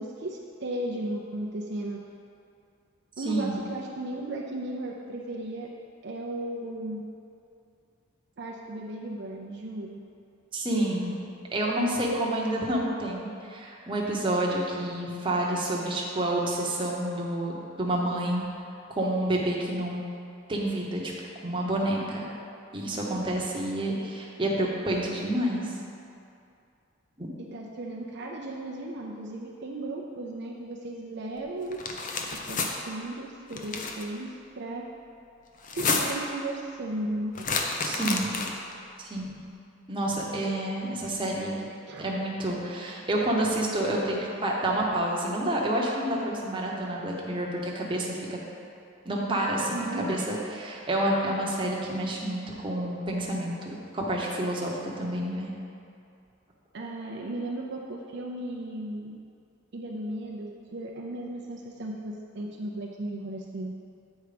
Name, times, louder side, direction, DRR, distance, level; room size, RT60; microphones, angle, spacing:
voice 1, 0.0-2.0 3.2-5.7 6.0-7.0 8.4-10.0 27.5-31.8 32.3-34.8 35.7-37.5 41.6-42.0 49.7-50.2 56.7-59.2 59.7-63.7, right 1 dB, 55° right, -1 dB, 0.5 m, -35 dB
voice 2, 10.5-11.2 11.5-18.5 19.0-20.0 20.5-21.1 21.4-22.3 22.7-25.8 27.2-27.3 37.8-38.3 39.0-39.4 39.9-41.6 42.0-48.4 49.0-55.5, right 1 dB, 25° right, -3 dB, 0.9 m, -29 dB
sound 1, 31.7-32.7 33.5-34.0 35.6-36.3 37.4-38.7, left 4 dB, 40° left, 0.6 m, -30 dB
8.0 x 4.5 x 5.1 m, 2.5 s
head